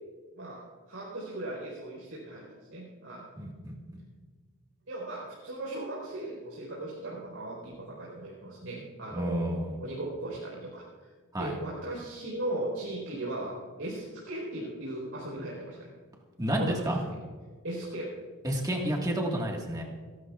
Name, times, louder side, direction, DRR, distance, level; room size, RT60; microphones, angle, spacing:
voice 1, 0.3-2.4 2.7-3.2 4.9-11.1 11.4-15.9 16.6-16.9 17.6-18.1, right 1 dB, 70° right, -6 dB, 4.3 m, -37 dB
voice 2, 3.4-4.0 9.1-9.7 11.3-11.6 16.4-17.0 18.4-19.8, right 1 dB, 15° right, -1 dB, 1.7 m, -30 dB
30.0 x 12.5 x 2.4 m, 1.5 s
head